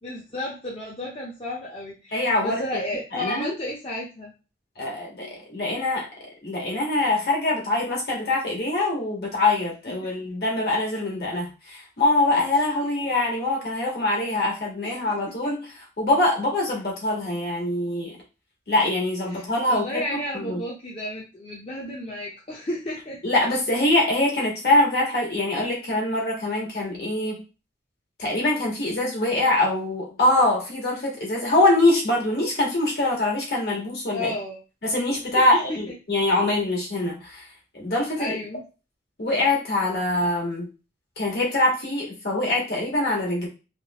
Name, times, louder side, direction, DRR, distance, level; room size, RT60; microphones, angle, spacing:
voice 1, 0.0-4.3 10.0-10.1 14.8-15.1 15.4-15.5 19.3-23.2 34.1-34.6 35.3-35.8 38.2-38.6, left 1 dB, 30° left, -4 dB, 0.7 m, -33 dB
voice 2, 2.1-2.6 3.1-3.5 4.8-6.1 6.4-15.6 16.0-18.2 18.7-20.6 23.2-27.4 28.2-34.3 34.8-37.4 37.7-38.3 39.2-40.7 41.2-43.5, left 2 dB, 60° left, -3 dB, 1.7 m, -24 dB
3.4 x 3.1 x 3.0 m, 0.31 s
head